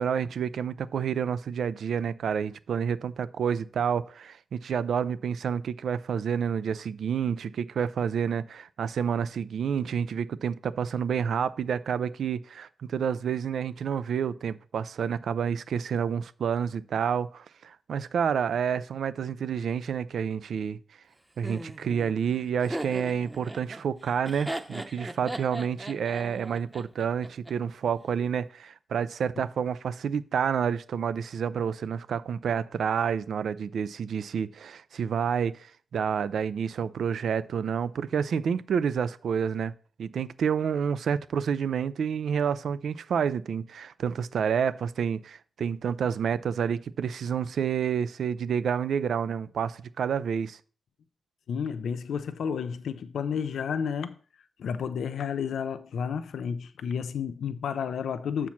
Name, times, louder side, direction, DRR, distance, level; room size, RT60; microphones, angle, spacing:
voice 1, 0.0-20.8 21.4-39.7 40.0-50.6, right 7 dB, 75° right, 0.4 m, -29 dB
Laughter, 21.4-27.5, right 1 dB, 15° right, 0.8 m, -38 dB
voice 2, 51.5-54.2 54.6-58.5, left 7 dB, 80° left, 0.5 m, -31 dB
7.1 x 4.5 x 5.8 m
cardioid pair, 90°, 0 cm